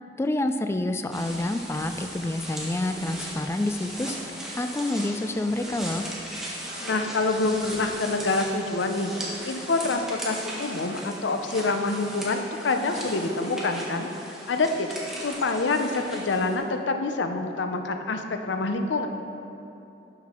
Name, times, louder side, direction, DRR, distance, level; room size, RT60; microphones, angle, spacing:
voice 1, 0.2-4.2 4.6-6.0, left 1 dB, 15° left, 7 dB, 0.3 m, -28 dB
sound 1, 1.1-16.6, equal, 5° right, 1.6 m, -37 dB
sound 2, 5.3-6.2 6.6-7.2 7.9-9.6, left 1 dB, 70° left, 2.1 m, -48 dB
voice 2, 6.8-9.1 9.4-14.1 14.5-19.1, left 3 dB, 90° left, 6 dB, 0.6 m, -26 dB
12.0 x 6.0 x 4.4 m, 2.8 s
head